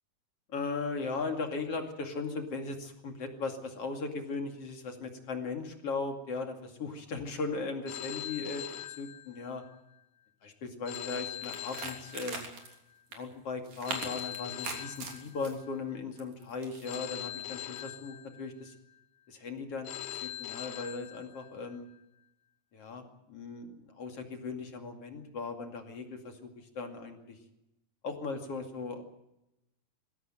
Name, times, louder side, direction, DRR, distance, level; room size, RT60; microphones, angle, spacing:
voice 1, 0.5-8.6 9.0-9.6 10.4-12.5 13.1-18.7 19.3-19.9 20.2-21.9 22.7-27.4 28.0-29.0, left 4 dB, 50° left, 5 dB, 3.2 m, -38 dB
Telephone, 7.9-9.7 10.9-12.7 13.9-15.7 16.9-18.7 19.9-21.7, left 12 dB, 80° left, 2.8 m, -42 dB
sound 1, 10.9-11.1 11.4-12.7 13.1-13.2 13.6-15.6 16.2-17.0, right 4 dB, 65° right, 4.6 m, -40 dB
20.5 x 16.5 x 9.2 m, 0.89 s
omnidirectional pair, 3.6 m